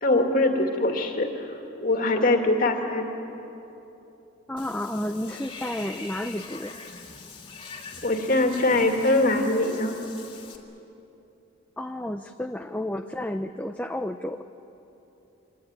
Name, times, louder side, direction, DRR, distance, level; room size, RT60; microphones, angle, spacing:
voice 1, 0.0-1.5 1.8-3.1 8.0-10.0, left 2 dB, 45° left, 3 dB, 2.2 m, -22 dB
voice 2, 4.5-6.8 11.8-14.5, left 1 dB, 5° left, 6 dB, 0.5 m, -31 dB
Water / Bathtub (filling or washing), 4.6-10.6, left 4 dB, 25° left, 2.3 m, -43 dB
25.5 x 19.5 x 9.7 m, 3.0 s
head